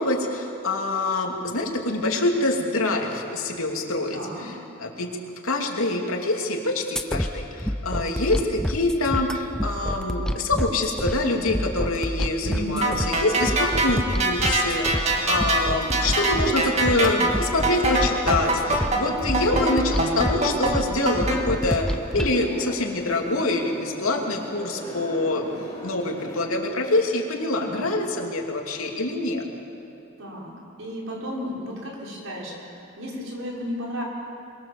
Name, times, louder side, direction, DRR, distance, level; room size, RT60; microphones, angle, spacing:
voice 1, 0.0-4.5 4.8-5.1 5.4-29.4, left 2 dB, 80° left, 1 dB, 2.9 m, -25 dB
voice 2, 4.1-4.6 12.4-13.0 18.8-19.4 27.5-27.9 30.2-30.5 30.8-34.0, equal, 70° right, -3 dB, 5.8 m, -34 dB
sound 1, 7.0-22.4, equal, 5° left, 0.5 m, -29 dB
sound 2, 12.8-21.4, right 2 dB, 30° right, 2.3 m, -24 dB
sound 3, 14.6-26.5, left 1 dB, 20° left, 4.6 m, -41 dB
24.5 x 22.5 x 7.3 m, 2.9 s
head